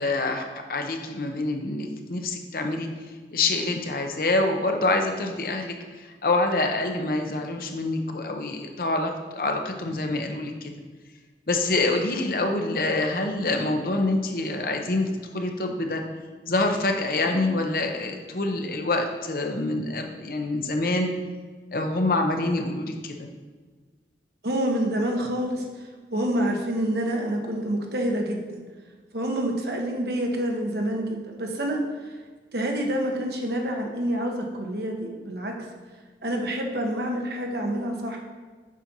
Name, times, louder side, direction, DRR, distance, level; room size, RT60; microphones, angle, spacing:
voice 1, 0.0-2.9 3.3-10.7 11.5-16.0 16.5-21.1 21.7-23.3, left 2 dB, 55° left, 4 dB, 0.8 m, -26 dB
voice 2, 24.4-25.6 26.1-28.6 29.1-31.8 32.5-35.6 36.2-38.2, right 1 dB, 65° right, 2 dB, 1.1 m, -27 dB
7.4 x 4.4 x 5.3 m, 1.4 s
head